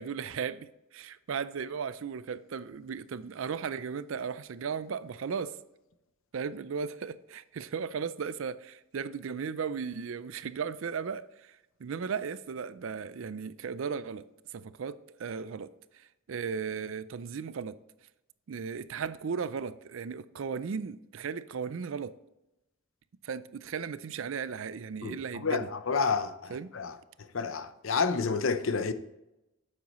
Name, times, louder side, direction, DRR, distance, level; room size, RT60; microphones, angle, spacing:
voice 1, 0.0-5.6 6.3-14.2 14.5-17.8 18.5-22.2 23.2-25.7 26.5-26.7, right 6 dB, 70° right, 0.4 m, -36 dB
voice 2, 25.0-26.9 27.3-28.9, left 5 dB, 70° left, 0.6 m, -30 dB
9.3 x 7.5 x 3.1 m
head